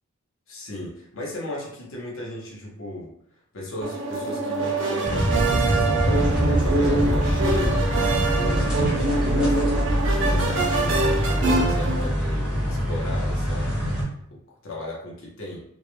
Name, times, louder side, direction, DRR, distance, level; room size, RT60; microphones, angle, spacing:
voice 1, 0.5-3.1 3.5-13.9 14.3-15.6, left 1 dB, 65° left, -3 dB, 0.7 m, -36 dB
sound 1, 3.8-12.1, right 3 dB, 55° right, 0.4 m, -25 dB
sound 2, 5.0-14.0, equal, 5° right, 0.5 m, -24 dB
2.3 x 2.1 x 3.0 m, 0.71 s
head